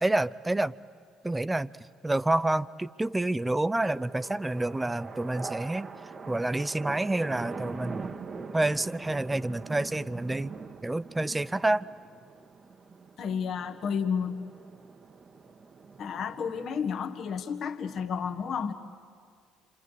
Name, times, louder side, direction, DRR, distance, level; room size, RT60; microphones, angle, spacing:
voice 1, 0.0-0.7 1.2-1.7 2.0-5.9 6.3-8.1 8.5-10.5 10.8-11.9, right 2 dB, 15° right, 16 dB, 0.6 m, -28 dB
sound 1, 3.7-16.7, right 4 dB, 40° right, 1.2 m, -43 dB
voice 2, 13.2-14.3 16.0-18.7, left 6 dB, 55° left, 5 dB, 1.3 m, -31 dB
28.0 x 25.5 x 8.1 m, 2.1 s
hypercardioid pair, 55°, 0 cm